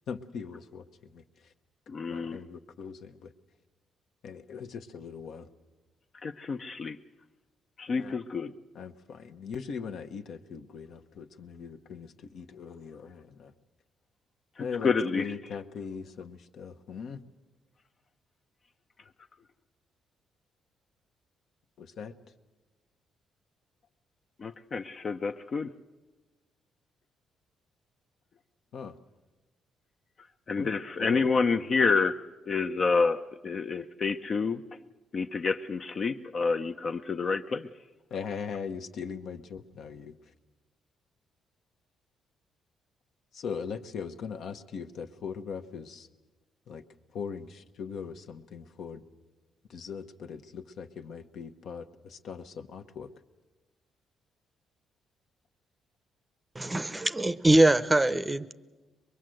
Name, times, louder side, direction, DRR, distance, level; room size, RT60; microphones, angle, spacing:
voice 1, 0.1-1.5 2.1-3.3 4.2-5.5 7.9-8.1 8.7-13.5 14.6-17.2 21.8-22.1 28.7-29.0 30.6-31.3 38.1-40.3 43.3-46.1 46.7-46.8 47.1-49.1 49.7-53.1, left 6 dB, 70° left, 6 dB, 1.1 m, -40 dB
voice 2, 1.9-2.4 6.2-7.0 7.8-8.5 14.8-15.2 24.4-25.7 30.5-32.2 32.5-34.6 35.1-37.7, left 4 dB, 45° left, 6 dB, 0.7 m, -28 dB
voice 3, 56.6-58.5, right 1 dB, 15° right, 14 dB, 0.7 m, -23 dB
22.5 x 22.5 x 7.8 m, 1.2 s
cardioid pair, 90°, 0 cm